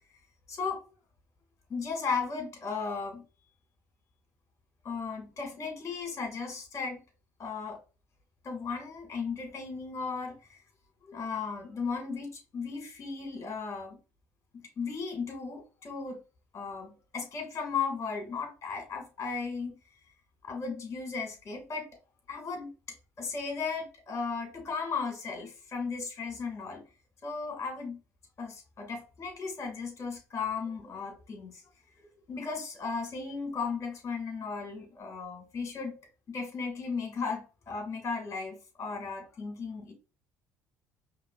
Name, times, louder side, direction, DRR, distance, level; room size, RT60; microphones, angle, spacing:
voice 1, 0.5-0.8 1.7-3.2 4.8-7.0 7.4-7.8 8.4-10.6 11.0-14.0 14.8-16.2 16.5-19.7 20.4-21.9 22.3-22.7 23.2-26.8 27.2-28.0 28.4-31.6 32.3-36.0 36.3-39.9, left 5 dB, 40° left, 1.6 m, -36 dB
4.9 x 3.0 x 2.2 m
figure-of-eight pair, 55°, 8 cm